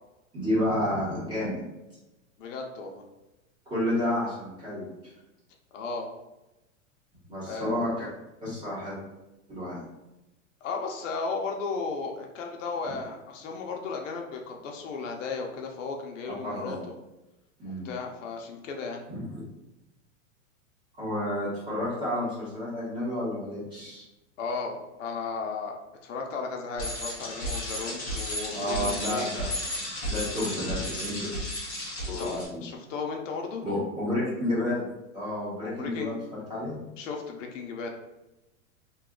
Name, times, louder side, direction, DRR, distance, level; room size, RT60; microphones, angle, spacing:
voice 1, 0.3-1.6 3.7-4.9 7.3-8.0 8.4-9.0 9.5-9.8 16.4-16.8 17.6-17.9 19.1-19.4 21.0-24.0 28.5-29.5 30.0-31.3 32.1-32.6 33.6-34.8 35.1-36.8, left 1 dB, 10° right, -9 dB, 0.9 m, -30 dB
voice 2, 2.4-3.0 5.7-6.1 7.5-7.8 10.6-16.9 17.8-19.0 24.4-25.7 26.0-29.3 32.1-33.7 35.6-36.1 37.0-37.9, left 4 dB, 70° left, 2 dB, 0.7 m, -35 dB
Bicycle, 26.8-32.4, left 1 dB, 15° left, 0.4 m, -33 dB
2.7 x 2.3 x 3.6 m, 0.99 s
supercardioid pair, 170°, 40 cm